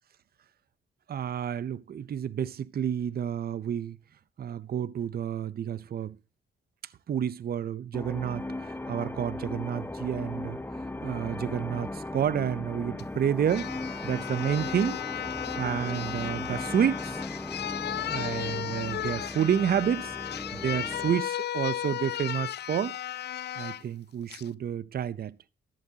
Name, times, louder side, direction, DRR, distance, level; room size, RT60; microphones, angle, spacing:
voice 1, 1.1-4.0 4.4-6.2 7.1-10.6 11.0-13.7 14.0-15.0 15.6-17.2 18.0-20.2 20.5-23.0 23.6-25.4, right 9 dB, 50° right, 0.6 m, -30 dB
sound 1, 7.9-21.3, left 2 dB, 10° left, 0.8 m, -37 dB
sound 2, 13.0-13.1 13.5-23.8 24.3-24.5, left 11 dB, 55° left, 0.5 m, -35 dB
13.5 x 12.0 x 2.8 m
cardioid pair, 65°, 20 cm